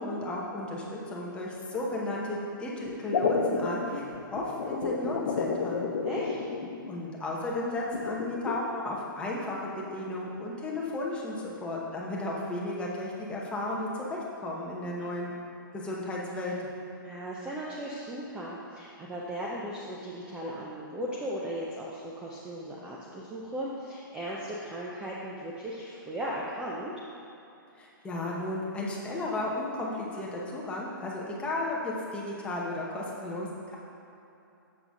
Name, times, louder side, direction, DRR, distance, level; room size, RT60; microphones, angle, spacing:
voice 1, 0.0-4.0 4.3-5.9 6.9-15.3 15.7-16.5 27.8-33.7, left 2 dB, 10° left, -3 dB, 0.8 m, -34 dB
sound 1, 2.9-7.0 7.9-8.6, left 4 dB, 75° left, 0.8 m, -31 dB
voice 2, 6.0-6.4 15.0-15.2 17.0-26.9, equal, 10° right, -5 dB, 0.4 m, -37 dB
7.3 x 3.9 x 5.9 m, 2.8 s
hypercardioid pair, 155°, 12 cm